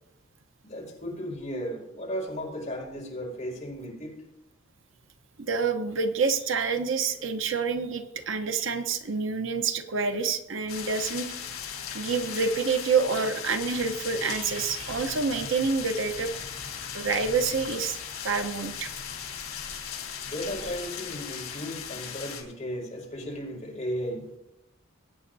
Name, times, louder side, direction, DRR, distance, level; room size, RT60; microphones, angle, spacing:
voice 1, 0.6-4.2 20.2-24.3, equal, 35° left, -3 dB, 5.1 m, -35 dB
voice 2, 5.4-11.3 11.9-16.3 16.9-18.0 18.2-18.9, right 5 dB, 65° right, 7 dB, 0.9 m, -27 dB
sound 1, 10.7-22.4, left 7 dB, 80° left, 3.7 m, -37 dB
21.0 x 9.3 x 2.7 m, 0.88 s
head